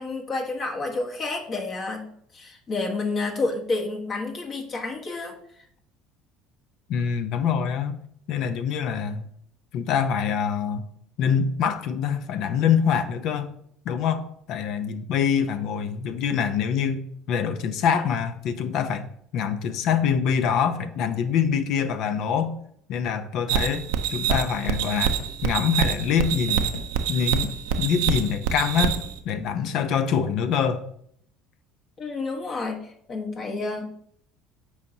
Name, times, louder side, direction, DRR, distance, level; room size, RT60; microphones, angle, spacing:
voice 1, 0.0-5.4 32.0-33.9, left 3 dB, 45° left, 1 dB, 1.3 m, -30 dB
voice 2, 6.9-8.0 8.3-9.3 9.7-10.9 11.2-13.5 13.8-19.1 19.3-22.6 22.9-25.2 25.4-26.7 27.1-29.0 29.2-30.9, left 7 dB, 60° left, 10 dB, 0.6 m, -25 dB
sound 1, 23.5-29.2, right 8 dB, 75° right, 0.6 m, -26 dB
sound 2, 24.3-24.8 25.2-25.5 26.0-26.9 27.4-27.8 28.6-29.4, left 3 dB, 85° left, 0.9 m, -39 dB
8.4 x 4.8 x 2.8 m, 0.67 s
hypercardioid pair, 70°, 0 cm